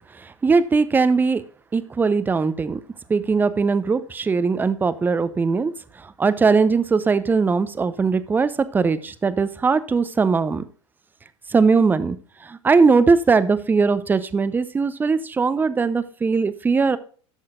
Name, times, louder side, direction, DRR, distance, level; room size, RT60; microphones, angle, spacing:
voice 1, 0.4-1.4 1.7-2.8 3.1-5.7 6.2-10.6 11.5-12.2 12.5-17.0, right 4 dB, 10° right, 15 dB, 0.6 m, -20 dB
11.5 x 7.5 x 2.4 m, 0.41 s
figure-of-eight pair, 85°, 16 cm